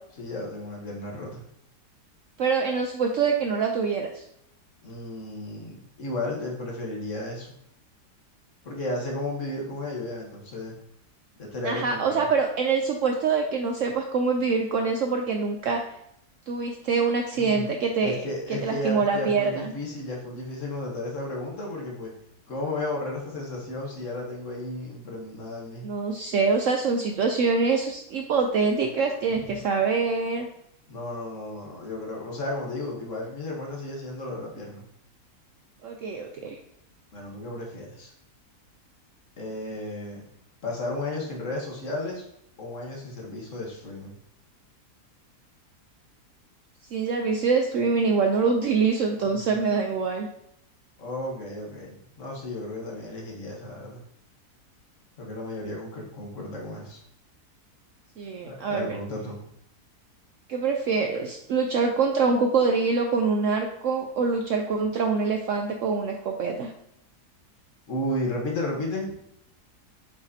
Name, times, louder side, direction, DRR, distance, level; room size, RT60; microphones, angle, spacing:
voice 1, 0.2-1.4 4.8-7.5 8.6-10.8 11.4-12.3 17.3-17.7 18.0-22.1 22.5-25.9 30.9-34.8 37.1-38.1 39.4-40.2 40.6-42.2 42.6-44.2 49.3-49.4 51.0-54.0 55.2-57.0 58.4-59.4 67.9-69.2, left 1 dB, 50° left, -1 dB, 1.5 m, -33 dB
voice 2, 2.4-4.2 11.6-15.8 16.5-18.2 18.5-19.7 25.8-30.5 35.8-36.6 46.9-50.3 58.2-59.0 60.5-66.7, right 4 dB, 70° right, 3 dB, 0.8 m, -25 dB
7.5 x 4.9 x 2.7 m, 0.75 s
omnidirectional pair, 1.8 m